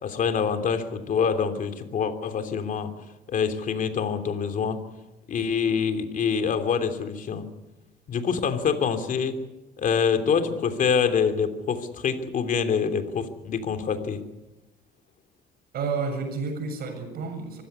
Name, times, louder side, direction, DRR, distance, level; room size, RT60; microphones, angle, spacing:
voice 1, 0.0-2.9 3.3-4.8 5.3-7.5 8.1-9.4 9.8-14.2, left 6 dB, 50° left, 7 dB, 3.1 m, -25 dB
voice 2, 15.7-17.6, right 4 dB, 65° right, 6 dB, 7.4 m, -30 dB
25.0 x 16.0 x 9.7 m, 1.0 s
cardioid pair, 110°, 17 cm